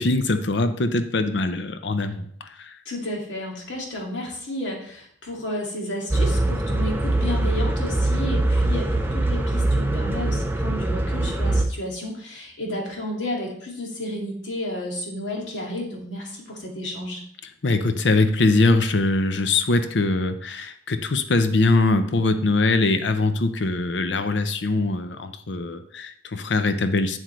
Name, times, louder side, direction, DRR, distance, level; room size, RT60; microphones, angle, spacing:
voice 1, 0.0-2.7 17.6-27.2, left 2 dB, 75° left, 9 dB, 0.6 m, -22 dB
voice 2, 2.9-17.2, left 1 dB, 90° left, -1 dB, 2.2 m, -32 dB
sound 1, 6.1-11.6, right 2 dB, 10° right, 0.6 m, -22 dB
8.1 x 7.5 x 3.1 m, 0.63 s
head